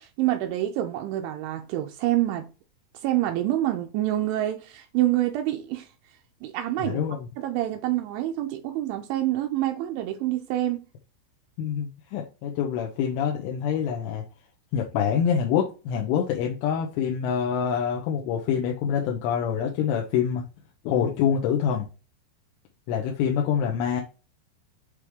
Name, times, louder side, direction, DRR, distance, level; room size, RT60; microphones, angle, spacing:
voice 1, 0.0-2.5 3.0-5.9 6.4-7.0 7.4-10.9, right 14 dB, 80° right, 2.8 m, -27 dB
voice 2, 6.8-7.3 11.6-14.2 14.7-20.5 20.8-21.9 22.9-24.0, left 8 dB, 85° left, 3.5 m, -26 dB
8.9 x 3.2 x 3.5 m
omnidirectional pair, 5.5 m